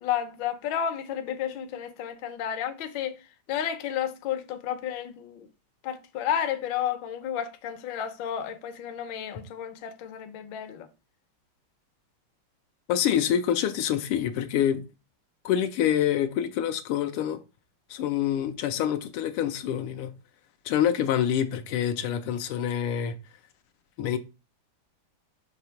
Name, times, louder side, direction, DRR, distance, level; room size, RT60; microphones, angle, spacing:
voice 1, 0.0-3.1 3.5-5.5 5.8-10.9, left 9 dB, 65° left, 1.4 m, -32 dB
voice 2, 12.9-14.8 15.4-17.4 17.9-20.1 20.6-23.2 24.0-24.2, left 9 dB, 85° left, 1.6 m, -26 dB
5.9 x 2.9 x 5.6 m
omnidirectional pair, 2.4 m